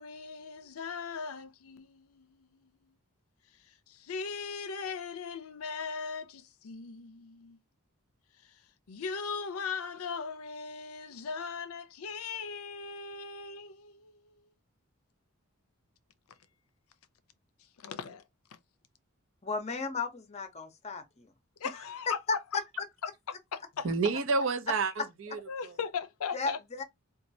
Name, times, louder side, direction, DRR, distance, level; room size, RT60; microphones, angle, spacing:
voice 1, 0.0-2.7 3.9-7.6 8.9-14.4 17.8-18.2 21.6-22.2 23.5-23.9 25.5-26.6, left 5 dB, 75° left, 0.5 m, -39 dB
voice 2, 19.4-21.3 21.7-22.6 26.3-26.8, left 4 dB, 30° left, 0.7 m, -35 dB
voice 3, 23.8-25.8 26.4-26.5, right 4 dB, 60° right, 0.6 m, -30 dB
4.1 x 2.3 x 2.6 m
head